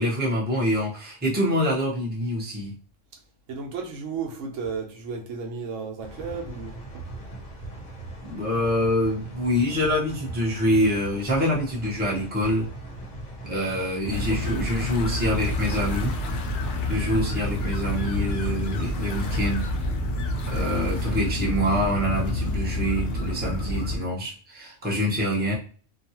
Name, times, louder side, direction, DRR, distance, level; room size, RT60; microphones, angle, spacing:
voice 1, 0.0-2.7 8.2-12.7 13.4-16.2 16.9-19.7 20.5-25.5, equal, 10° right, 0.7 m, -25 dB
voice 2, 3.5-7.1 14.3-14.6 20.7-21.2, right 5 dB, 75° right, 1.0 m, -34 dB
sound 1, 6.0-19.5, right 1 dB, 40° left, 0.9 m, -40 dB
sound 2, 14.1-24.0, left 1 dB, 70° left, 0.9 m, -28 dB
2.7 x 2.3 x 2.8 m
omnidirectional pair, 1.3 m